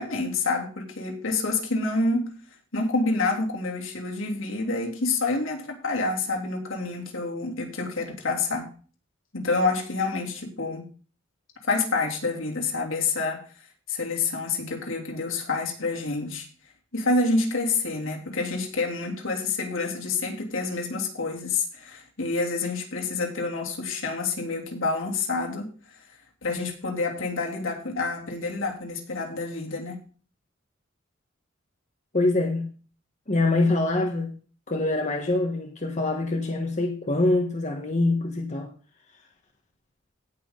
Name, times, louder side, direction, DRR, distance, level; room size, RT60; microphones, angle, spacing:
voice 1, 0.0-2.4 2.7-8.7 9.3-10.9 11.6-13.4 13.9-16.5 16.9-25.7 26.4-30.0, left 3 dB, 80° left, 3.2 m, -28 dB
voice 2, 32.1-32.7 33.3-34.3 34.7-38.7, left 2 dB, 35° left, 1.4 m, -24 dB
18.0 x 6.3 x 4.0 m
head